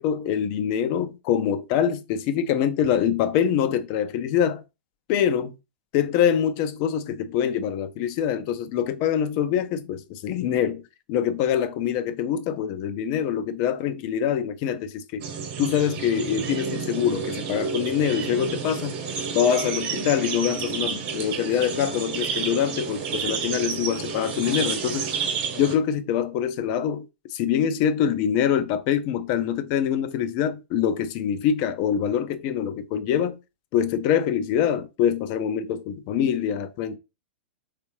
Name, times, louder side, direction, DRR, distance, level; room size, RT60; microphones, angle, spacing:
voice 1, 0.0-4.6 5.1-5.5 5.9-10.8 11.1-15.2 15.6-19.0 19.3-25.1 25.5-33.4 33.7-37.0, left 9 dB, 45° left, 0.5 m, -24 dB
sound 1, 15.2-25.8, right 6 dB, 45° right, 1.1 m, -30 dB
3.3 x 3.3 x 3.0 m
hypercardioid pair, 105°, 6 cm